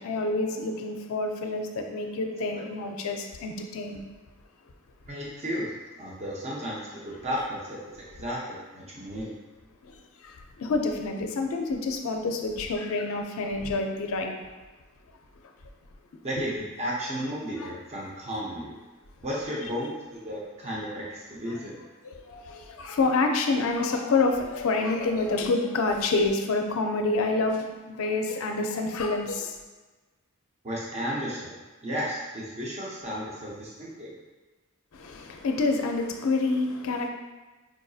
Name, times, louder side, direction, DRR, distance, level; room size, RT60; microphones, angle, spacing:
voice 1, 0.0-4.0 10.2-10.3 10.6-14.4 17.6-17.7 22.1-29.5 34.9-37.1, left 3 dB, 65° left, 3 dB, 0.4 m, -27 dB
voice 2, 5.1-9.3 16.2-18.7 19.2-21.8 30.6-34.2, equal, 30° right, -5 dB, 0.6 m, -34 dB
4.8 x 2.6 x 2.3 m, 1.2 s
head